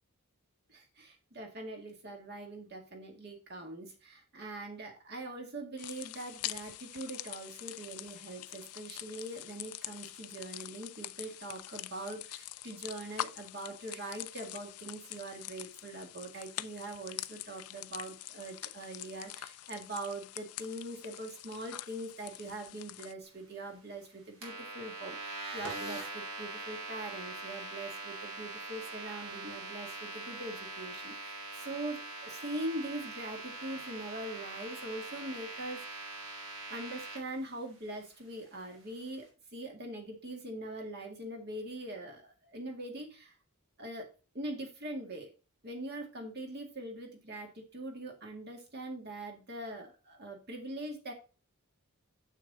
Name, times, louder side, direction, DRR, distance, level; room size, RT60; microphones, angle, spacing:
voice 1, 0.7-36.1 36.7-43.3 43.8-45.3 45.6-51.1, right 1 dB, 45° right, 3 dB, 2.0 m, -42 dB
sound 1, 5.8-23.1, left 14 dB, 85° left, 0.5 m, -44 dB
sound 2, 24.4-37.2, right 3 dB, 65° right, 3.2 m, -42 dB
7.1 x 6.4 x 4.0 m, 0.33 s
head